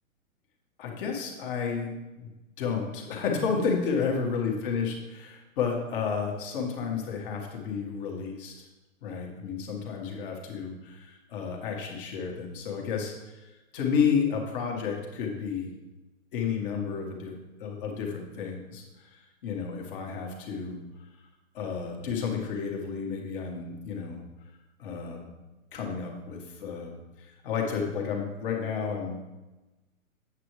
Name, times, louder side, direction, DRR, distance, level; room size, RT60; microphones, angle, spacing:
voice 1, 0.8-1.9 2.2-2.3 2.6-8.7 9.0-15.7 16.3-17.3 17.6-20.8 21.5-24.2 24.8-25.3 25.7-29.2, left 6 dB, 40° left, 0 dB, 1.8 m, -31 dB
8.5 x 7.7 x 3.2 m, 1.1 s
hypercardioid pair, 140°, 41 cm